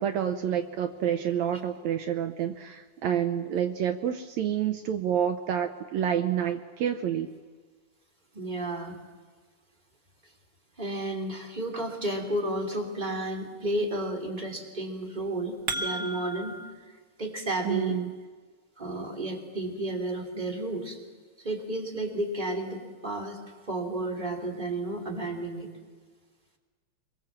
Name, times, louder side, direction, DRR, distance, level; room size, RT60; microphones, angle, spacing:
voice 1, 0.0-7.3 17.7-18.1, right 9 dB, 75° right, 8 dB, 2.1 m, -28 dB
voice 2, 8.3-9.0 10.8-16.6 17.2-18.0 18.8-21.0 21.4-23.4 23.7-25.7, right 1 dB, 15° right, 2 dB, 3.2 m, -32 dB
sound 1, 15.2-16.7, right 2 dB, 45° right, 1.1 m, -34 dB
26.0 x 23.0 x 7.5 m, 1.5 s
omnidirectional pair, 3.3 m